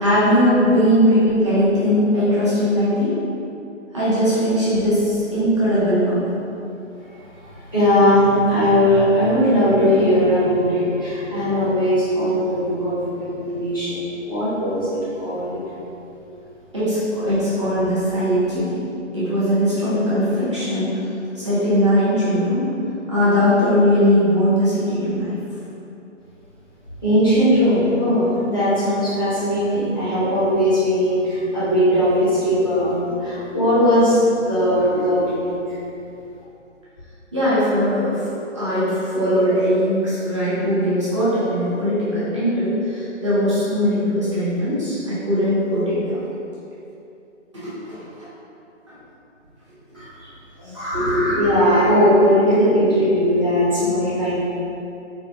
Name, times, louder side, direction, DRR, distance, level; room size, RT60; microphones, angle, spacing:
voice 1, 0.0-3.1 3.9-6.4 16.7-18.8 19.1-21.0 21.4-22.6 23.1-25.3 37.3-38.2 38.5-46.2 47.5-48.0 50.9-51.3, equal, 25° right, -11 dB, 0.6 m, -19 dB
voice 2, 7.7-15.6 27.0-35.5 49.9-50.1 50.6-54.3, equal, 20° left, -14 dB, 0.5 m, -19 dB
3.9 x 2.1 x 3.3 m, 2.8 s
figure-of-eight pair, 140°, 37 cm